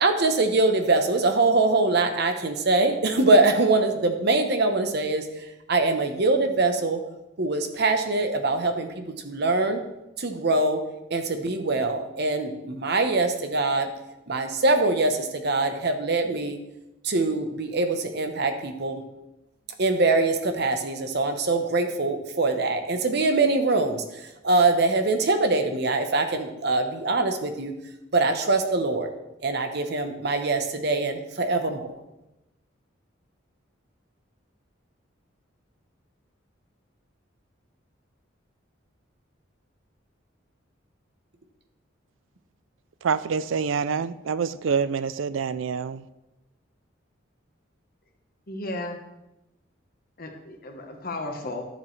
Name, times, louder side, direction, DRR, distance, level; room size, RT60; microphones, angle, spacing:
voice 1, 0.0-5.3 5.7-7.0 7.4-9.8 10.2-10.8 11.1-13.9 14.3-16.6 17.0-19.0 19.8-27.7 28.1-29.1 29.4-31.9, right 3 dB, 55° right, 0.9 m, -23 dB
voice 2, 43.0-46.0, right 6 dB, 75° right, 0.4 m, -26 dB
voice 3, 48.5-49.0 50.2-51.6, left 2 dB, 50° left, 1.2 m, -34 dB
11.0 x 7.4 x 3.2 m
head